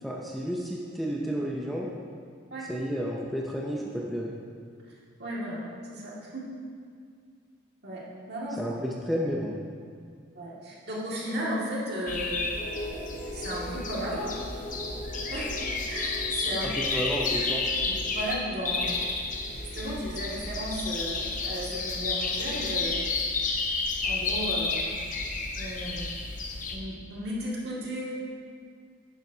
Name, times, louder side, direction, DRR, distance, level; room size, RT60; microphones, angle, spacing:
voice 1, 0.0-1.9 2.7-4.3 8.6-9.6 16.8-17.7, equal, ahead, -3 dB, 0.5 m, -31 dB
voice 2, 5.2-5.6 5.9-6.4 7.8-8.6 10.3-12.5 13.3-14.4 15.3-15.5 15.9-16.7 17.8-19.0 19.7-23.0 23.4-23.7 24.0-24.9 25.6-26.2 26.7-28.2, equal, 55° right, -5 dB, 2.0 m, -34 dB
sound 1, 12.1-18.3 18.7-26.8, left 3 dB, 40° left, 0.8 m, -31 dB
sound 2, 12.5-23.0, left 1 dB, 60° left, 1.8 m, -43 dB
10.5 x 9.6 x 2.7 m, 2.2 s
head